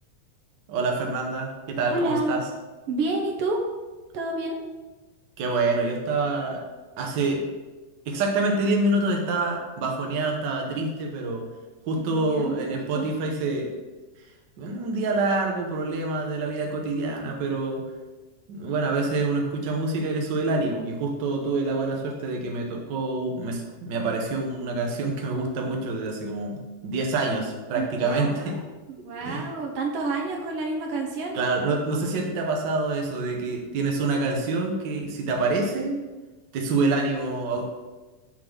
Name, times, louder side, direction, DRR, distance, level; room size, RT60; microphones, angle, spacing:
voice 1, 0.7-2.4 5.4-6.7 7.0-7.5 8.1-11.4 11.9-13.7 14.6-17.8 18.5-28.6 29.2-29.5 31.3-36.0 36.5-37.7, right 3 dB, 85° right, 1 dB, 0.9 m, -26 dB
voice 2, 1.9-2.3 2.9-3.6 4.1-4.6 12.0-13.1 27.7-28.6 29.0-31.4, right 2 dB, 65° right, 1 dB, 1.5 m, -29 dB
6.8 x 3.8 x 6.0 m, 1.2 s
omnidirectional pair, 3.5 m